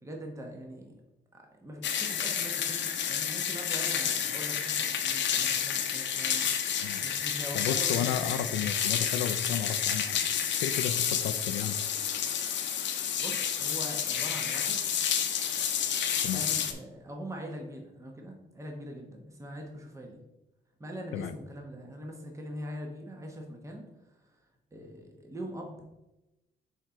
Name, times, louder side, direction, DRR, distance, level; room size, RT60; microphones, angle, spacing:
voice 1, 0.0-0.9 1.3-6.5 7.0-8.5 13.2-14.8 16.3-20.2 20.8-24.4 24.7-25.8, equal, 15° right, 1 dB, 1.1 m, -42 dB
sound 1, 1.8-16.7, left 8 dB, 65° left, 0.8 m, -30 dB
voice 2, 7.5-11.8 16.2-16.5 21.1-21.3, left 9 dB, 90° left, 10 dB, 0.5 m, -33 dB
6.4 x 4.5 x 3.7 m, 0.95 s
cardioid pair, 90°, 20 cm